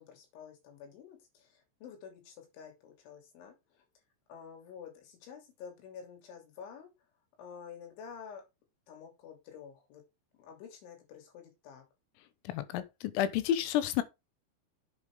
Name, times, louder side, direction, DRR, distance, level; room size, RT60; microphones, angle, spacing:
voice 1, 0.0-3.8 4.3-6.9 7.4-8.4 8.9-10.0 10.4-11.8, left 7 dB, 70° left, 5.2 m, -49 dB
voice 2, 12.5-14.0, left 11 dB, 90° left, 3.7 m, -30 dB
8.7 x 8.1 x 3.6 m
omnidirectional pair, 5.8 m